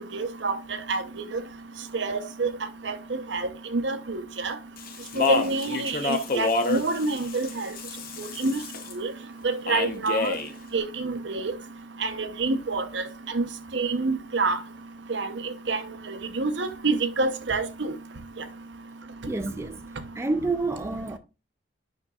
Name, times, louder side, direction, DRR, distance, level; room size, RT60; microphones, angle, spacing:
voice 1, 0.1-0.6 0.9-1.0 1.3-1.4 1.9-2.5 2.8-3.0 3.3-4.5 5.2-7.7 8.2-8.6 8.9-9.1 9.4-10.3 10.7-11.5 12.0-13.0 13.3-13.5 13.7-14.6 15.1-15.3 15.7-15.8 16.1-17.9, right 3 dB, 70° right, 0.8 m, -27 dB
Speech, 4.8-8.9 9.7-10.5, left 3 dB, 50° left, 0.8 m, -28 dB
voice 2, 19.3-19.8 20.1-21.2, right 3 dB, 15° right, 0.3 m, -28 dB
9.7 x 5.8 x 2.4 m
head